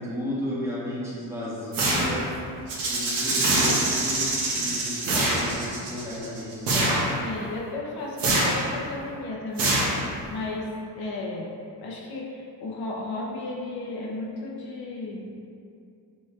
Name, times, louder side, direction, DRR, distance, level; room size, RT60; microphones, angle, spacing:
voice 1, 0.0-2.3 2.9-7.0, left 1 dB, 5° right, -8 dB, 1.1 m, -33 dB
sound 1, 1.7-2.4 3.4-4.1 5.0-5.5 6.7-7.2 8.2-8.7 9.6-10.3, right 1 dB, 55° right, 1.1 m, -24 dB
Rattle (instrument), 2.7-6.5, right 3 dB, 90° right, 1.3 m, -28 dB
voice 2, 7.2-11.5 11.8-15.4, left 2 dB, 65° left, -3 dB, 0.9 m, -34 dB
7.0 x 3.0 x 2.4 m, 2.5 s
cardioid pair, 115°, 40 cm